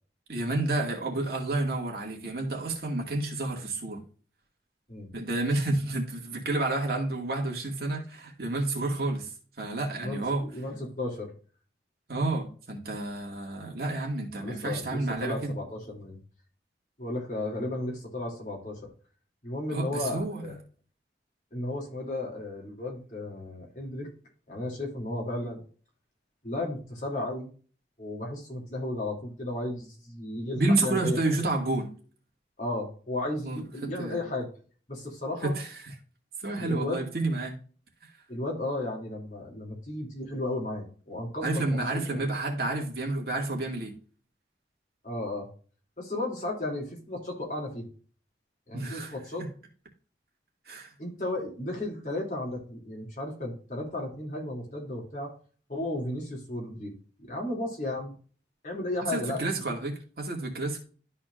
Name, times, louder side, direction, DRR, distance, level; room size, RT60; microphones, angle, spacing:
voice 1, 0.3-4.0 5.1-9.3 9.6-10.4 12.1-15.5 19.7-20.6 30.6-31.9 33.4-34.2 35.4-35.9 36.4-37.6 41.4-43.9 48.7-49.1 50.7-50.9 59.1-60.8, right 2 dB, 55° right, 2.1 m, -30 dB
voice 2, 10.0-11.3 14.4-16.2 17.0-18.9 19.4-20.5 21.5-24.1 24.5-25.6 26.4-27.5 28.0-31.3 32.6-34.5 34.9-35.5 36.6-37.0 38.3-42.2 45.0-45.5 46.0-47.9 48.7-49.5 51.0-55.3 55.7-56.9 57.3-58.1 58.6-59.4, left 1 dB, 45° left, 2.8 m, -34 dB
13.0 x 4.3 x 2.5 m
head